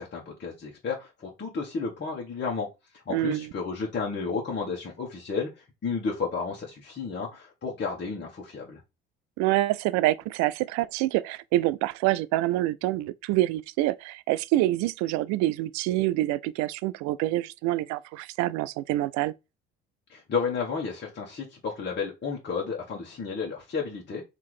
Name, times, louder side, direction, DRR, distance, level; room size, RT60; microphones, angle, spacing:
voice 1, 0.0-8.8 20.1-24.2, left 5 dB, 35° left, 1.4 m, -32 dB
voice 2, 3.1-3.5 9.4-19.3, right 16 dB, 65° right, 0.4 m, -26 dB
3.6 x 2.9 x 4.7 m
hypercardioid pair, 65°, 30 cm